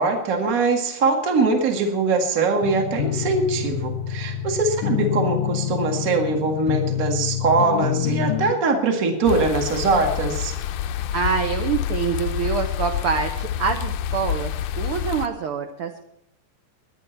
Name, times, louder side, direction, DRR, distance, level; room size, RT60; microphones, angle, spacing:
voice 1, 0.0-10.5, right 3 dB, 30° right, 3 dB, 1.9 m, -22 dB
sound 1, 2.6-8.5, left 11 dB, 70° left, 1.6 m, -26 dB
sound 2, 9.3-15.3, left 10 dB, 90° left, 1.5 m, -27 dB
voice 2, 11.1-16.0, right 6 dB, 75° right, 5 dB, 1.3 m, -26 dB
21.5 x 9.4 x 4.5 m, 0.77 s
omnidirectional pair, 3.8 m